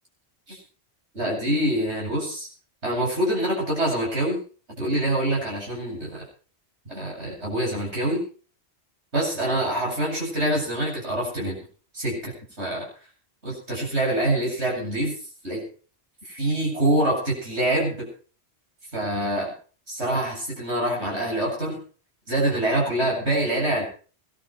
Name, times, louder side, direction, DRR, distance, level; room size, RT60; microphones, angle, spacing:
voice 1, 1.1-2.5 2.8-4.4 4.8-6.2 6.9-8.2 9.1-11.6 11.9-12.3 12.6-12.9 13.4-15.2 15.4-15.7 16.2-18.1 18.9-19.5 19.9-21.8 22.3-23.8, right 1 dB, 80° right, -3 dB, 8.5 m, -25 dB
22.0 x 12.0 x 4.6 m, 0.40 s
omnidirectional pair, 1.1 m